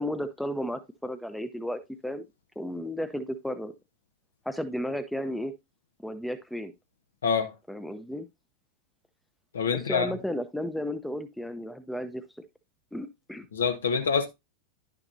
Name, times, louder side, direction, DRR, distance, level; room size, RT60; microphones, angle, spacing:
voice 1, 0.0-2.2 2.6-3.7 4.5-5.5 6.0-6.7 7.7-8.3 9.7-12.2 12.9-13.4, equal, ahead, 0.7 m, -33 dB
voice 2, 7.2-7.5 9.5-10.1 13.5-14.3, left 6 dB, 65° left, 1.0 m, -26 dB
10.5 x 5.9 x 2.6 m
figure-of-eight pair, 90°, 0 cm